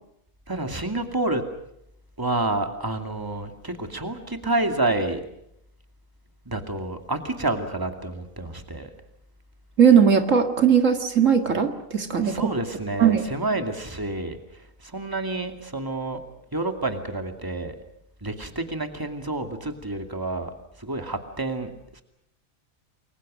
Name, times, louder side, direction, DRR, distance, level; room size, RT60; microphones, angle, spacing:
voice 1, 0.5-1.4 2.2-5.2 6.5-8.9 12.2-16.2 16.5-17.8 18.2-20.5 20.8-22.0, right 2 dB, 15° right, 6 dB, 2.4 m, -29 dB
voice 2, 9.8-12.5 13.0-13.2, right 7 dB, 70° right, 6 dB, 2.3 m, -18 dB
29.0 x 22.5 x 6.4 m, 0.77 s
omnidirectional pair, 1.4 m